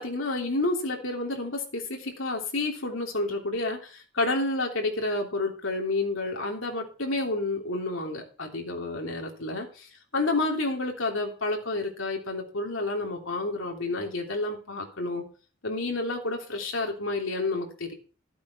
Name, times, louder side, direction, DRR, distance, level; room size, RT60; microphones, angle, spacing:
voice 1, 0.0-9.9 10.1-15.2 15.6-17.9, left 2 dB, 80° left, 2 dB, 3.2 m, -30 dB
13.0 x 8.3 x 5.6 m, 0.36 s
head